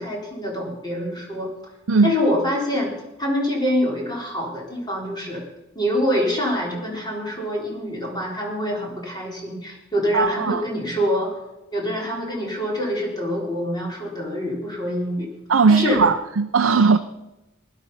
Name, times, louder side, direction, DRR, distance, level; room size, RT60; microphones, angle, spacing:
voice 1, 0.0-1.5 2.0-2.9 3.2-5.4 5.7-11.3 11.7-15.3 15.7-16.0, equal, 20° left, -2 dB, 4.0 m, -25 dB
voice 2, 10.1-10.6 15.5-17.0, right 4 dB, 70° right, 6 dB, 0.6 m, -18 dB
19.5 x 11.5 x 5.5 m, 0.98 s
head